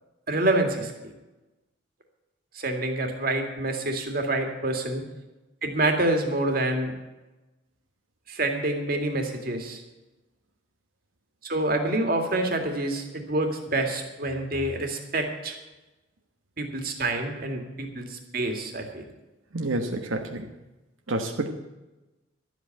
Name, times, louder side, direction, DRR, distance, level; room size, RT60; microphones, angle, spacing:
voice 1, 0.3-0.9 2.5-5.0 5.6-6.9 8.3-9.8 11.4-15.6 16.6-19.0, right 2 dB, 50° right, 4 dB, 2.2 m, -27 dB
voice 2, 19.5-20.4 21.1-21.5, right 2 dB, 85° right, 4 dB, 1.1 m, -28 dB
12.5 x 8.1 x 9.0 m, 1.1 s
head